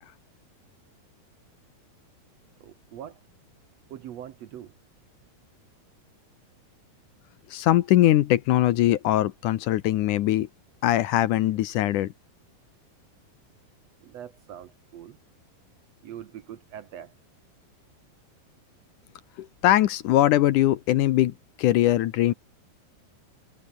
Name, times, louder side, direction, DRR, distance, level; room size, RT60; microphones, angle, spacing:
voice 1, 2.6-3.2 3.9-4.7 14.0-15.2 16.0-17.1, right 10 dB, 75° right, 1.5 m, -42 dB
voice 2, 7.5-10.5 10.8-12.1 19.4-22.3, left 14 dB, 75° left, 1.9 m, -21 dB
omnidirectional pair, 4.6 m